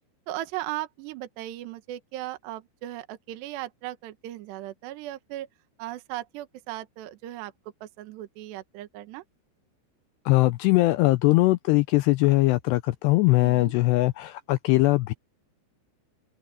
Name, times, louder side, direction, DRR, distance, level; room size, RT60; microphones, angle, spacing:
voice 1, 0.3-5.5 5.8-7.5 7.8-9.2 13.4-13.7, right 15 dB, 70° right, 3.3 m, -37 dB
voice 2, 10.3-15.1, left 19 dB, 80° left, 2.5 m, -21 dB
omnidirectional pair, 5.4 m